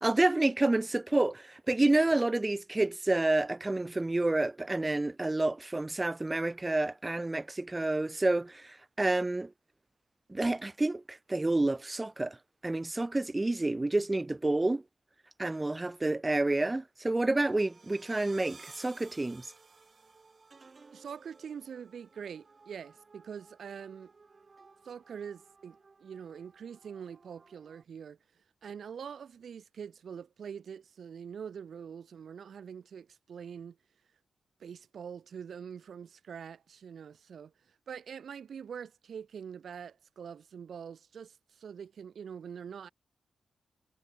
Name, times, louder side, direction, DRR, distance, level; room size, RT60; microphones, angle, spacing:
voice 1, 0.0-9.5 10.3-12.4 12.6-14.8 15.4-19.5, right 2 dB, 20° right, 0.7 m, -29 dB
sound 1, 17.3-27.8, right 4 dB, 40° right, 3.3 m, -57 dB
voice 2, 20.9-24.1 24.8-33.8 34.6-42.9, right 7 dB, 75° right, 0.8 m, -44 dB
cardioid pair, 75°, 0 cm